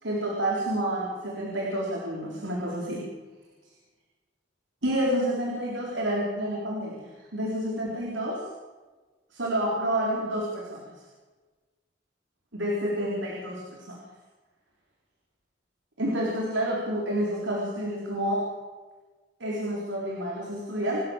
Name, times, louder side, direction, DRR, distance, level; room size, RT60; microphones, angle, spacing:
voice 1, 0.0-3.0 4.8-8.4 9.3-10.9 12.5-14.0 16.0-18.5 19.4-21.0, right 1 dB, 90° right, -3 dB, 4.1 m, -29 dB
27.5 x 13.0 x 7.3 m, 1.3 s
head